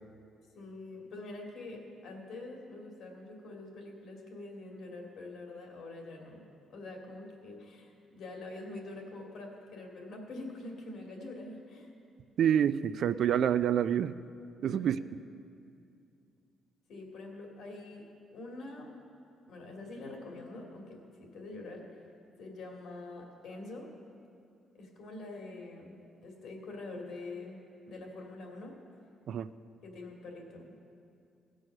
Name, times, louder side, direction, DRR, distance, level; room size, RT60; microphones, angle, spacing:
voice 1, 0.5-6.4 6.7-11.9 14.6-14.9 16.9-19.0 19.5-22.0 22.4-23.9 24.7-27.6 27.9-28.8 29.8-30.8, left 2 dB, 75° left, 1 dB, 2.2 m, -45 dB
voice 2, 12.4-14.1 14.6-15.0 29.3-29.5, right 9 dB, 65° right, 13 dB, 0.4 m, -27 dB
16.5 x 6.3 x 6.4 m, 2.4 s
cardioid pair, 90°, 0 cm